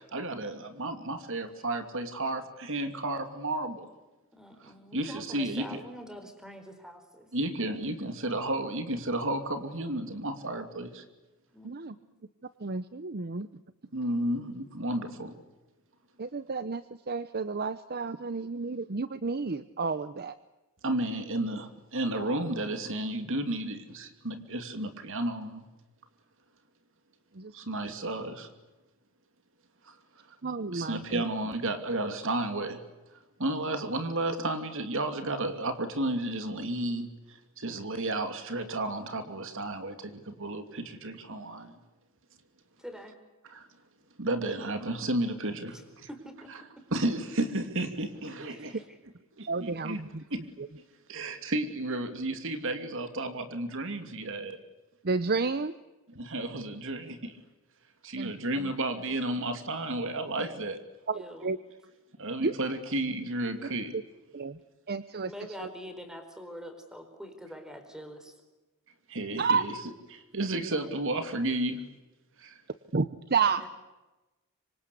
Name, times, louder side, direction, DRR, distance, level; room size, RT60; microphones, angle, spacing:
voice 1, 0.0-3.9 4.6-5.8 7.3-11.0 13.9-15.4 20.8-25.6 27.5-28.5 29.8-30.0 30.7-32.8 33.4-41.8 43.4-43.7 44.2-45.8 46.9-48.8 49.4-50.0 50.3-50.4 50.7-50.8 51.1-54.6 56.1-57.4 58.0-60.8 62.2-63.9 69.1-69.7 70.1-71.8 72.4-72.6, right 1 dB, 60° right, 7 dB, 2.7 m, -32 dB
voice 2, 4.3-7.3 11.5-12.1 42.8-43.2 45.7-45.8 46.1-46.5 48.5-49.0 61.1-61.6 65.2-68.4 73.6-73.7, equal, 5° right, 6 dB, 4.6 m, -45 dB
voice 3, 11.6-12.0 12.6-13.5 16.2-20.3 27.4-27.5 30.4-31.2 49.5-50.2 55.0-55.7 58.2-58.3 61.1-61.6 62.4-62.5 64.3-64.6 64.9-65.3 65.6-65.7 69.4-69.6 72.9-73.6, right 4 dB, 45° right, 13 dB, 0.8 m, -31 dB
25.5 x 25.5 x 8.4 m, 1.1 s
head